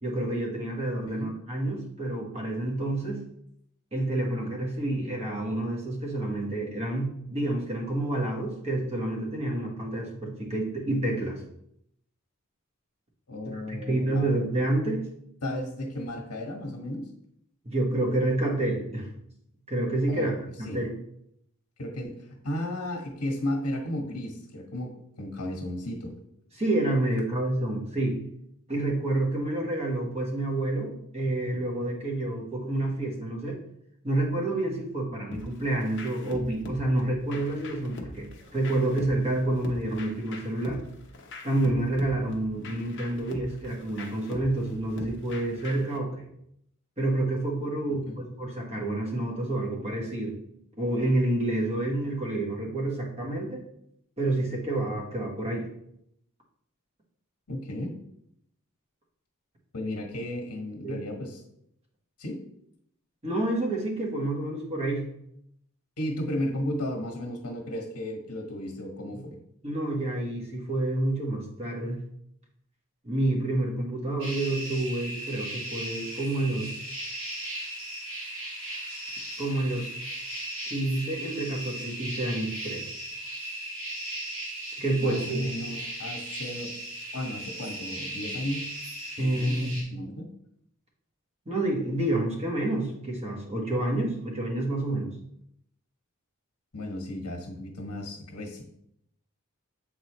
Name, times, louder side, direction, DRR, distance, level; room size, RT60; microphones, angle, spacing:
voice 1, 0.0-3.2 3.9-11.4 13.5-15.0 17.6-19.1 19.7-20.3 20.7-21.0 26.5-28.2 28.7-33.6 34.0-40.8 41.4-46.2 47.0-50.3 50.8-53.6 54.2-55.7 60.8-61.0 63.2-65.1 69.6-72.0 73.0-76.7 79.4-79.9 80.7-82.9 84.8-85.5 89.2-89.8 91.4-95.1, right 1 dB, 30° right, -1 dB, 1.3 m, -28 dB
voice 2, 13.3-14.4 15.4-17.1 20.1-20.3 20.6-20.8 21.8-26.2 47.9-48.2 57.5-57.9 59.7-61.4 62.2-62.4 66.0-69.4 85.0-86.7 87.1-88.7 89.2-90.3 96.7-98.6, left 1 dB, 85° left, 1 dB, 1.4 m, -34 dB
sound 1, 35.3-46.0, left 2 dB, 55° left, 0.9 m, -43 dB
sound 2, 74.2-89.8, right 1 dB, 60° right, 2.1 m, -37 dB
7.7 x 3.9 x 3.1 m, 0.75 s
head